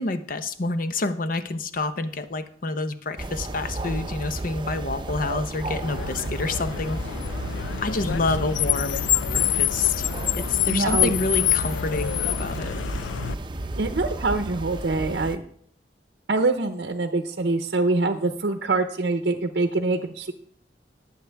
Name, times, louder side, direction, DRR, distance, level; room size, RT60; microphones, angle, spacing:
voice 1, 0.0-7.2 7.8-10.1 10.4-12.8, left 2 dB, 50° left, 10 dB, 0.8 m, -28 dB
sound 1, 3.2-15.4, right 2 dB, 25° right, 0.6 m, -33 dB
Car, 5.8-13.3, left 12 dB, 90° left, 0.3 m, -26 dB
voice 2, 10.7-11.1 13.8-15.4 16.3-20.3, right 3 dB, 65° right, 6 dB, 0.7 m, -24 dB
18.5 x 8.0 x 3.4 m, 0.62 s
head